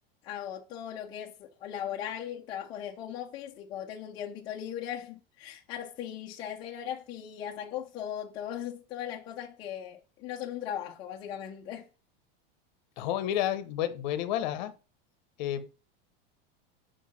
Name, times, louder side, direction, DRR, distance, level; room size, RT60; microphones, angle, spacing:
voice 1, 0.2-11.9, left 10 dB, 15° left, 0.4 m, -38 dB
voice 2, 13.0-14.7 15.4-15.7, left 11 dB, 50° left, 0.8 m, -30 dB
4.5 x 4.5 x 5.8 m
supercardioid pair, 180°, 30 cm